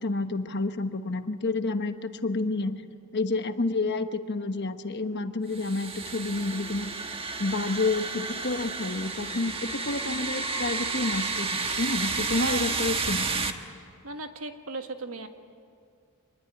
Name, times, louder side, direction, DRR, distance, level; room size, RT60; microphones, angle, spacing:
voice 1, 0.0-2.8 3.1-6.9 7.4-13.5, left 3 dB, 55° left, 8 dB, 1.2 m, -29 dB
sound 1, 5.5-13.5, right 4 dB, 25° right, 1.4 m, -31 dB
voice 2, 12.4-12.7 14.0-15.3, right 3 dB, 80° right, 6 dB, 1.8 m, -36 dB
25.5 x 21.0 x 9.9 m, 2.3 s
head